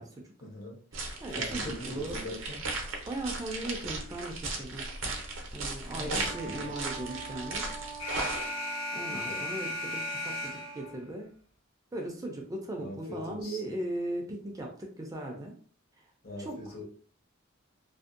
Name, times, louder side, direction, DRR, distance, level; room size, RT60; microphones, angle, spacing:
voice 1, 0.4-0.8 1.3-2.6 5.9-6.8 9.1-9.5 12.8-13.6 16.2-16.8, left 1 dB, 50° left, -1 dB, 0.9 m, -42 dB
voice 2, 0.9-2.2 3.1-4.9 5.5-7.7 8.9-11.3 11.9-15.6 16.4-16.8, right 1 dB, 20° right, 1 dB, 0.4 m, -38 dB
sound 1, 0.9-8.5, right 3 dB, 80° right, 0.6 m, -36 dB
Wind instrument woodwind instrument, 6.1-11.0, right 3 dB, 25° left, 0.6 m, -44 dB
Alarm, 8.0-11.0, left 1 dB, 90° left, 0.9 m, -36 dB
2.6 x 2.1 x 2.4 m, 0.44 s
head